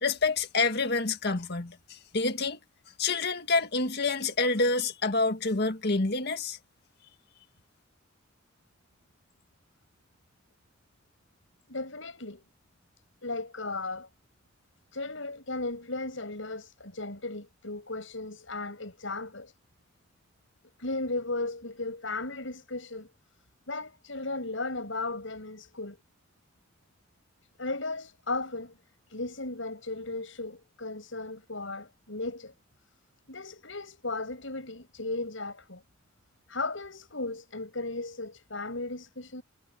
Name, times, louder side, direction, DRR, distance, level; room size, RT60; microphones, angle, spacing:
voice 1, 0.0-2.6 3.0-6.6, left 3 dB, 55° left, 2.0 m, -27 dB
voice 2, 11.7-12.4 13.2-14.1 14.9-19.5 20.8-23.1 23.7-26.0 27.6-28.8 29.1-32.5 33.3-35.8 36.5-39.4, left 2 dB, 80° left, 6.9 m, -36 dB
head